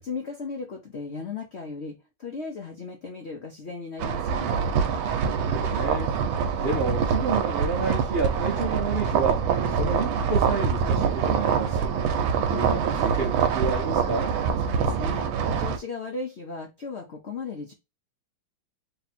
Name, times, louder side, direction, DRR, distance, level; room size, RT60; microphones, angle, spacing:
voice 1, 0.0-4.6 14.6-17.7, left 4 dB, 80° left, 0.5 m, -36 dB
sound 1, 4.0-15.8, right 6 dB, 85° right, 1.4 m, -25 dB
voice 2, 5.2-6.2 6.6-12.0 12.5-14.4, right 4 dB, 70° right, 0.5 m, -30 dB
3.2 x 2.8 x 4.2 m
omnidirectional pair, 2.2 m